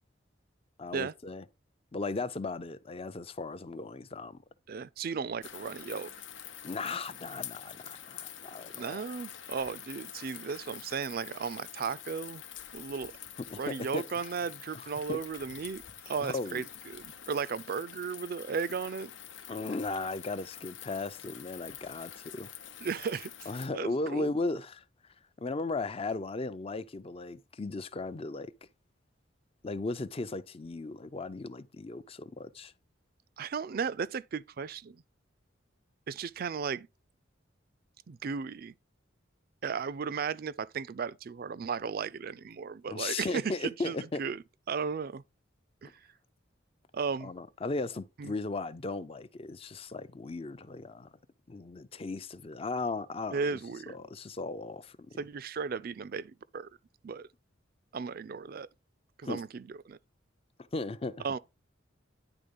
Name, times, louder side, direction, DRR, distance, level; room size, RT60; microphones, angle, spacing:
voice 1, 0.8-1.4 1.9-4.4 6.6-9.0 13.5-14.1 14.7-15.2 16.2-16.6 19.5-22.5 23.5-24.8 25.4-28.5 29.6-32.7 42.9-44.2 47.2-51.1 51.5-53.6 53.9-55.2 59.2-59.4 60.7-61.2, left 3 dB, 30° left, 0.5 m, -36 dB
voice 2, 4.7-6.1 8.7-12.4 12.7-13.1 13.6-19.1 22.8-24.3 33.4-35.0 36.1-36.9 38.1-38.7 39.6-45.2 45.8-45.9 46.9-47.3 48.2-48.3 53.3-54.0 55.2-56.7 57.0-57.3 57.9-58.7 59.2-60.0 61.2-61.4, right 5 dB, 50° right, 0.4 m, -35 dB
sound 1, 5.4-23.7, left 10 dB, 75° left, 0.8 m, -47 dB
10.0 x 3.6 x 5.2 m
head